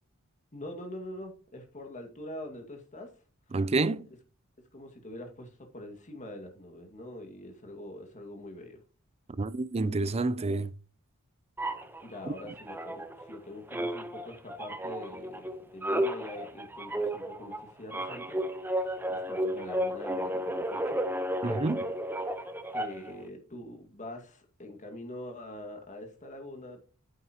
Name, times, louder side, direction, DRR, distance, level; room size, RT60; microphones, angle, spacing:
voice 1, 0.5-3.1 4.7-8.8 12.0-21.0 22.7-26.8, left 1 dB, 35° left, 2.0 m, -44 dB
voice 2, 3.5-4.1 9.4-10.7 12.3-12.4 21.4-21.9, right 3 dB, 30° right, 0.5 m, -29 dB
sound 1, 11.6-13.4 13.7-23.2, right 1 dB, 10° right, 0.9 m, -33 dB
9.5 x 8.3 x 2.9 m
head